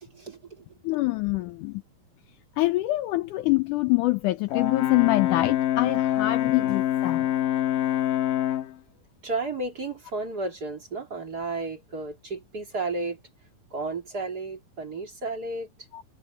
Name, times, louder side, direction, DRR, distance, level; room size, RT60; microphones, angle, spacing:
voice 1, 0.0-0.8 9.2-13.2 13.7-15.7, right 3 dB, 30° right, 2.6 m, -33 dB
voice 2, 0.8-1.8 2.6-7.3 15.9-16.0, left 19 dB, 85° left, 1.8 m, -25 dB
Brass instrument, 4.5-8.7, left 12 dB, 70° left, 2.8 m, -25 dB
omnidirectional pair, 4.2 m